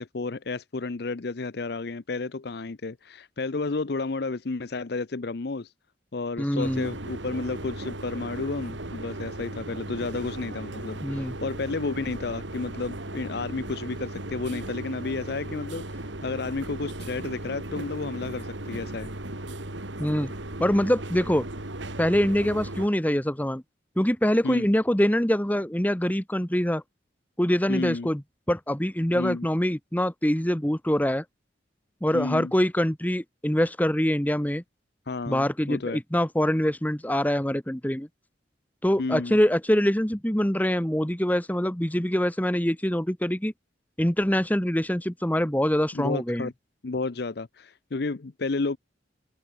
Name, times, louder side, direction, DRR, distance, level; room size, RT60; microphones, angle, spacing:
voice 1, 0.0-5.7 6.1-19.1 24.4-24.7 27.7-28.1 29.1-29.5 32.1-32.5 35.1-36.0 39.0-39.4 45.9-46.5 46.8-48.8, left 3 dB, 60° left, 0.7 m, -32 dB
voice 2, 6.4-6.9 11.0-11.3 20.0-20.3 20.6-21.5 22.0-23.6 24.0-26.8 27.4-28.2 28.5-31.2 32.0-34.6 35.3-38.1 38.8-43.5 44.0-46.5, equal, 10° left, 1.3 m, -24 dB
sound 1, 6.6-22.9, right 1 dB, 80° right, 3.0 m, -37 dB
open air
head